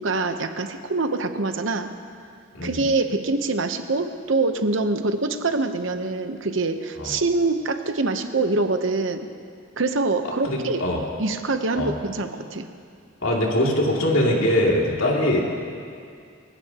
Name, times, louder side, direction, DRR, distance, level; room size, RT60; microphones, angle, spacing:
voice 1, 0.0-1.9 2.6-9.3 9.8-10.8 11.2-12.7, right 3 dB, 65° right, 8 dB, 0.9 m, -24 dB
voice 2, 10.4-11.0 11.8-11.9 13.2-15.4, left 1 dB, 70° left, -2 dB, 2.6 m, -22 dB
24.0 x 16.0 x 3.0 m, 2.3 s
head